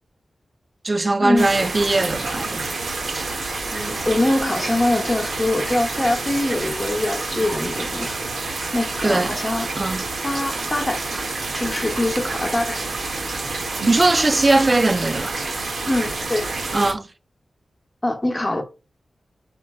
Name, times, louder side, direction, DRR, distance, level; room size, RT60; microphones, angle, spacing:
voice 1, 0.8-2.8 3.1-3.3 9.0-9.4 9.8-10.0 13.9-15.4 16.7-17.1, right 2 dB, 35° right, 0.5 m, -20 dB
sound 1, 1.4-16.9, right 3 dB, 75° right, 1.0 m, -28 dB
voice 2, 3.7-8.3 8.7-9.7 10.2-11.3 11.5-12.9 15.9-16.5 18.0-18.6, left 1 dB, 15° left, 1.0 m, -23 dB
4.5 x 4.5 x 2.3 m
wide cardioid pair, 80°, 0 cm